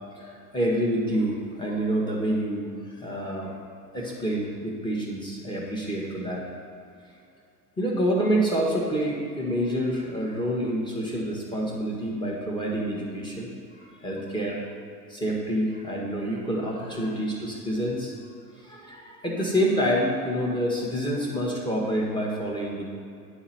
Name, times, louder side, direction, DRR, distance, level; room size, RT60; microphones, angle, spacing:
voice 1, 0.1-3.6 3.9-6.4 7.8-13.5 14.0-14.6 15.1-18.2 18.6-22.8, equal, 10° left, -3 dB, 1.6 m, -27 dB
9.6 x 3.8 x 4.4 m, 2.4 s
figure-of-eight pair, 85°, 49 cm